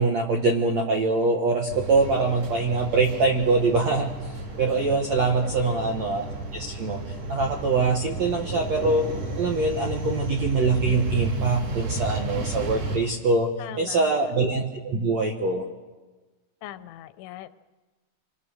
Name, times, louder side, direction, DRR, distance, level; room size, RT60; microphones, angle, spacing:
voice 1, 0.0-4.1 4.6-6.2 6.5-7.0 7.3-9.1 9.4-15.6, right 3 dB, 65° right, 1 dB, 1.8 m, -23 dB
sound 1, 1.7-13.0, right 2 dB, 45° right, 4.9 m, -32 dB
voice 2, 5.4-5.9 13.6-14.3 16.6-17.5, left 14 dB, 85° left, 11 dB, 3.1 m, -40 dB
27.0 x 21.0 x 6.5 m, 1.3 s
omnidirectional pair, 5.2 m